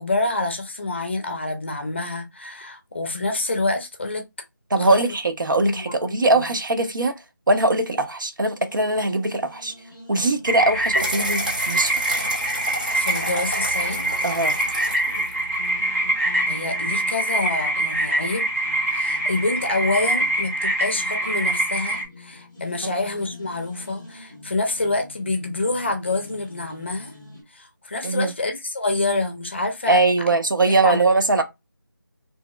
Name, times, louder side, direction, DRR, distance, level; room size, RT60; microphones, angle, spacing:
voice 1, 0.0-4.2 4.8-5.0 5.6-6.5 12.9-14.1 16.4-18.5 18.9-27.2 27.5-30.0 30.7-31.1, left 2 dB, 35° left, 0.6 m, -27 dB
voice 2, 4.7-7.1 7.5-9.7 10.1-12.0 14.2-14.5 22.8-22.9 28.0-28.3 29.9-31.4, right 2 dB, 70° right, 0.7 m, -21 dB
sound 1, 8.5-27.4, left 2 dB, ahead, 0.9 m, -45 dB
sound 2, 10.5-16.0, right 1 dB, 25° right, 0.6 m, -31 dB
sound 3, 10.5-22.1, right 1 dB, 40° right, 1.2 m, -24 dB
2.8 x 2.8 x 2.3 m
figure-of-eight pair, 170°, 11 cm